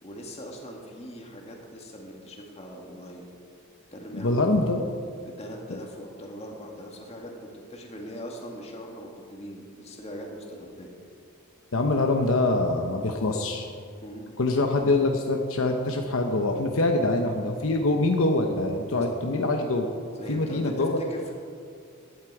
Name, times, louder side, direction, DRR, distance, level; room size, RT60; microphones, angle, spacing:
voice 1, 0.0-3.3 3.9-4.5 5.2-10.9 14.0-14.4 20.2-21.3, equal, 30° left, 0 dB, 2.0 m, -41 dB
voice 2, 4.1-4.8 5.7-5.8 11.7-13.7 14.4-19.9 20.3-21.0, left 2 dB, 65° left, 3 dB, 0.9 m, -24 dB
15.5 x 11.0 x 4.9 m, 2.3 s
head